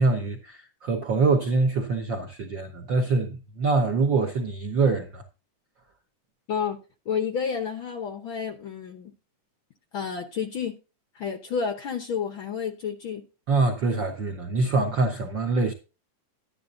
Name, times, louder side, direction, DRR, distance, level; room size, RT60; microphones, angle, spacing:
voice 1, 0.0-5.2 13.5-15.7, right 3 dB, 80° right, 1.0 m, -24 dB
voice 2, 7.1-9.1 9.9-10.8 11.1-13.2, left 6 dB, 85° left, 1.1 m, -30 dB
12.0 x 11.0 x 2.6 m
omnidirectional pair, 3.7 m